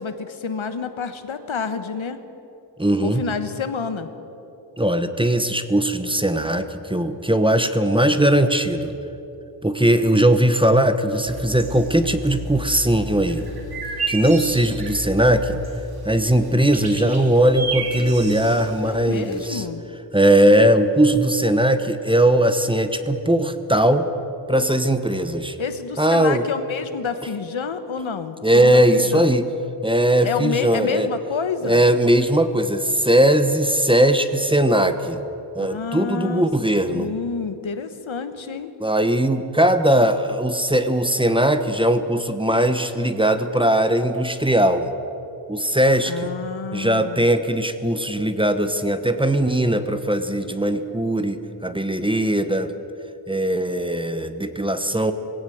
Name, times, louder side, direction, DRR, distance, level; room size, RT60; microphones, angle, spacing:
voice 1, 0.0-2.2 3.0-4.1 18.8-19.8 25.6-29.3 30.2-31.8 35.6-36.5 36.9-38.7 46.1-47.3, left 5 dB, 85° left, 9 dB, 1.3 m, -29 dB
voice 2, 2.8-3.2 4.8-8.9 9.6-13.5 14.1-15.6 16.0-19.6 20.1-24.1 24.5-25.5 26.0-26.4 28.4-29.4 29.8-31.1 31.6-35.2 35.5-37.1 38.8-44.9 45.5-46.3 46.7-52.7 53.3-55.1, right 1 dB, 10° right, 9 dB, 1.0 m, -19 dB
sound 1, 11.2-19.6, right 3 dB, 50° right, 2.8 m, -33 dB
21.0 x 17.0 x 7.9 m, 3.0 s
wide cardioid pair, 100°, 46 cm